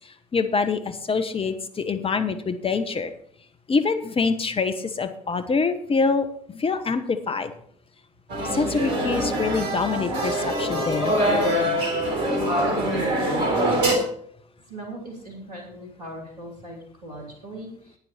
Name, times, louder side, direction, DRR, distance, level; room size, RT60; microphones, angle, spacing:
voice 1, 0.3-3.1 3.7-7.5 8.5-11.1, left 4 dB, 30° left, 9 dB, 1.2 m, -25 dB
sound 1, 8.3-14.0, right 1 dB, 60° right, 3.3 m, -24 dB
voice 2, 14.7-18.0, right 1 dB, 85° right, 0 dB, 2.7 m, -39 dB
11.0 x 9.6 x 4.4 m, 0.63 s
figure-of-eight pair, 55°, 19 cm